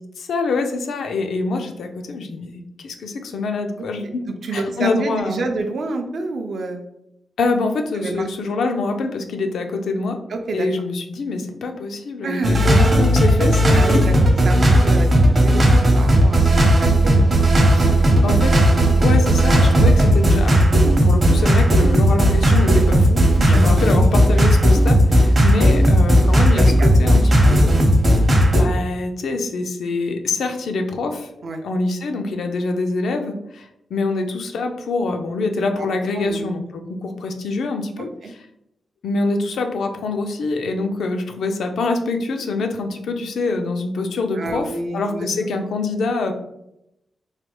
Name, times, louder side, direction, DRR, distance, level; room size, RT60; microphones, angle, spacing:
voice 1, 0.2-4.2 4.5-5.5 7.4-10.2 10.5-14.1 18.2-18.6 19.0-27.8 28.5-31.3 31.6-38.4 39.0-46.3, left 3 dB, 80° left, 5 dB, 0.4 m, -25 dB
voice 2, 4.0-6.9 7.9-8.2 10.3-10.7 12.2-12.7 13.7-14.1 14.4-15.1 15.4-16.5 16.8-17.4 17.7-18.2 23.5-23.6 26.6-27.0 31.4-31.6 35.8-35.9 36.1-36.4 38.0-38.3 44.4-45.3, right 3 dB, 60° right, 5 dB, 0.4 m, -28 dB
sound 1, 12.4-28.6, right 1 dB, 35° right, 0.7 m, -14 dB
3.2 x 2.2 x 2.9 m, 0.82 s
wide cardioid pair, 110°, 0 cm